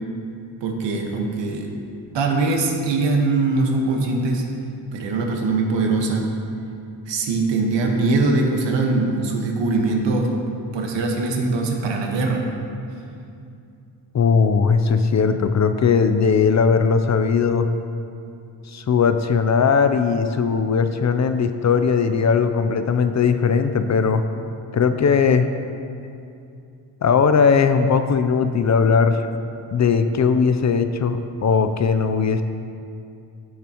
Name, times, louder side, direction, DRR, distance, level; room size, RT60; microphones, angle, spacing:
voice 1, 0.6-1.7 2.1-4.4 4.9-6.3 7.1-10.3 10.7-12.4, right 3 dB, 80° right, 1 dB, 1.4 m, -22 dB
voice 2, 14.1-17.7 18.7-24.2 24.7-25.5 27.0-29.3 29.7-32.4, left 5 dB, 40° left, 9 dB, 0.5 m, -18 dB
15.0 x 6.7 x 3.0 m, 2.5 s
cardioid pair, 80°, 43 cm